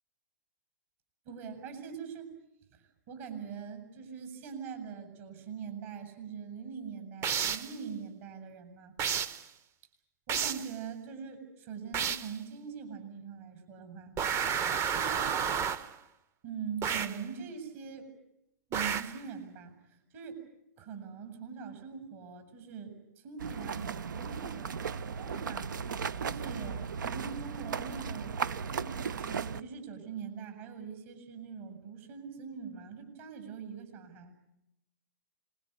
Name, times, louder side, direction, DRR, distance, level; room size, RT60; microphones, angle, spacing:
voice 1, 1.2-2.3 2.7-8.9 10.3-14.2 14.9-15.3 16.4-18.1 18.7-19.7 20.1-20.4 20.8-22.9 23.2-24.8 25.2-28.4 28.7-34.3, right 6 dB, 45° right, 8 dB, 7.8 m, -42 dB
sound 1, 7.2-7.8 9.0-9.4 10.3-10.7 11.9-12.4 14.2-15.9 16.8-17.2 18.7-19.2, right 7 dB, 25° right, 1.1 m, -31 dB
sound 2, 23.4-29.6, right 6 dB, 75° right, 0.9 m, -36 dB
27.0 x 22.0 x 8.3 m, 0.81 s
hypercardioid pair, 130°, 10 cm